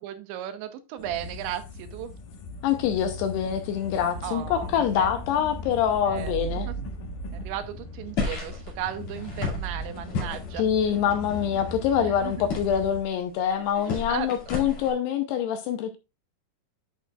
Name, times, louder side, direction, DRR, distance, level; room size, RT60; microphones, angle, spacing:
voice 1, 0.0-2.1 4.2-4.7 4.9-5.1 6.1-6.4 6.6-6.7 7.4-10.6 12.0-12.3 13.7-14.3, right 11 dB, 80° right, 3.0 m, -35 dB
sound 1, 1.0-13.0, left 4 dB, 65° left, 2.3 m, -39 dB
voice 2, 2.6-6.7 10.6-16.0, left 9 dB, 80° left, 2.5 m, -25 dB
sound 2, 4.3-8.4 8.9-9.9, right 6 dB, 25° right, 2.7 m, -39 dB
sound 3, 8.2-14.9, left 4 dB, 45° left, 3.1 m, -34 dB
11.0 x 6.2 x 2.4 m
omnidirectional pair, 5.3 m